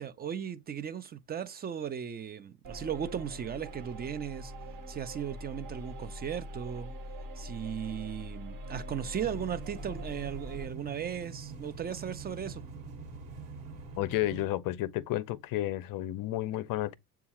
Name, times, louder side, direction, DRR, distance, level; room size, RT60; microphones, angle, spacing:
voice 1, 0.0-4.5 4.9-6.9 7.4-12.6, right 8 dB, 25° right, 0.3 m, -37 dB
sound 1, 2.6-10.6, equal, 45° right, 0.9 m, -43 dB
sound 2, 9.2-14.4, right 4 dB, 70° right, 1.3 m, -45 dB
voice 2, 14.0-17.0, left 15 dB, 50° left, 0.5 m, -32 dB
6.9 x 2.4 x 2.8 m
supercardioid pair, 85°, 46 cm